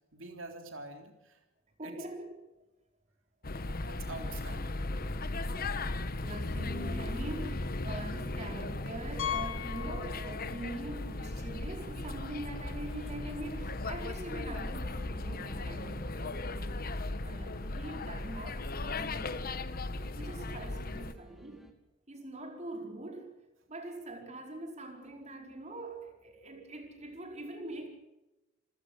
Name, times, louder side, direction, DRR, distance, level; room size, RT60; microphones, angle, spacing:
voice 1, 0.1-1.4 1.8-2.0 3.9-5.1 5.6-5.8 16.9-17.0, right 2 dB, 70° right, 4 dB, 3.5 m, -47 dB
voice 2, 1.8-2.3 6.2-19.7 20.2-21.6 22.1-23.3 23.7-27.9, right 2 dB, 35° right, 3 dB, 4.8 m, -43 dB
sound 1, 3.4-21.1, left 2 dB, 45° left, 1.2 m, -37 dB
Piano, 9.2-10.8 11.1-11.2 11.8-11.9 12.1-12.2 14.3-14.4, left 10 dB, 75° left, 1.9 m, -38 dB
sound 2, 11.2-21.7, equal, ahead, 2.6 m, -60 dB
28.5 x 14.5 x 6.6 m, 1.0 s
head